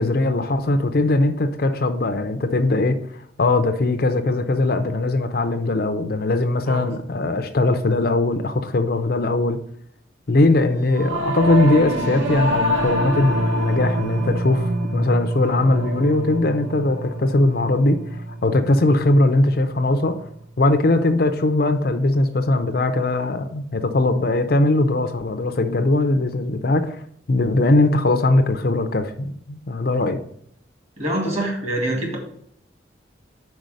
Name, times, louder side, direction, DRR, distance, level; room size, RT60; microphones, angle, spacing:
voice 1, 0.0-3.0 3.4-9.6 10.3-20.2 20.6-27.0 27.3-30.2, left 2 dB, 55° left, 0.6 m, -20 dB
Singing / Musical instrument, 10.9-20.5, right 1 dB, 90° right, 1.1 m, -26 dB
voice 2, 31.0-32.2, right 1 dB, 35° right, 2.2 m, -25 dB
5.3 x 4.8 x 6.2 m
head